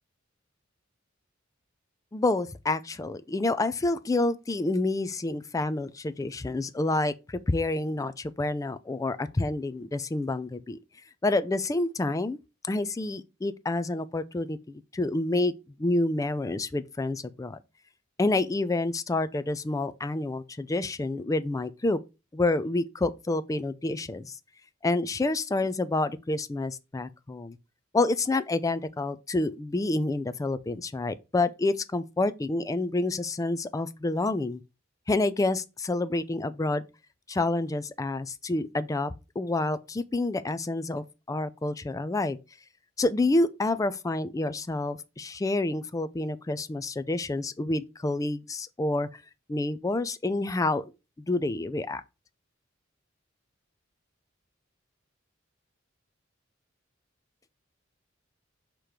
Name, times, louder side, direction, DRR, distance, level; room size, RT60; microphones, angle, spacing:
voice 1, 2.1-10.8 11.2-12.4 12.7-15.5 15.8-17.6 18.2-22.0 22.3-24.4 24.8-27.6 27.9-34.6 35.1-36.8 37.3-42.4 43.0-49.2 49.5-50.8 51.3-52.0, left 2 dB, 15° left, 0.4 m, -28 dB
6.5 x 3.0 x 5.0 m
head